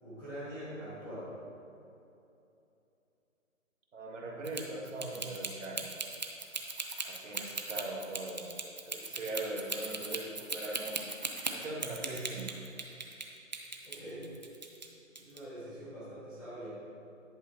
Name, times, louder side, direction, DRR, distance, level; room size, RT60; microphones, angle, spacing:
voice 1, 0.0-1.3 13.8-14.3 15.2-16.7, equal, 5° left, -14 dB, 0.9 m, -44 dB
voice 2, 3.9-5.9 7.0-8.6 8.9-11.1 11.5-12.6, right 2 dB, 65° right, -2 dB, 1.9 m, -40 dB
sound 1, 4.4-13.3 13.5-14.9 15.2-15.4, right 3 dB, 35° right, 0.5 m, -38 dB
10.5 x 8.5 x 2.7 m, 2.8 s
hypercardioid pair, 170°, 40 cm